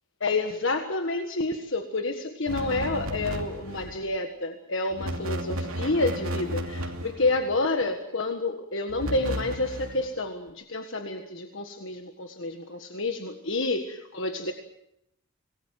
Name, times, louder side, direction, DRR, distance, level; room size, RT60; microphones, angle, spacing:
voice 1, 0.2-14.5, left 2 dB, 60° left, 6 dB, 1.6 m, -29 dB
sound 1, 2.5-4.0 4.9-7.5 8.9-10.1, equal, 70° right, 2.8 m, -33 dB
25.5 x 19.5 x 7.6 m, 0.79 s
head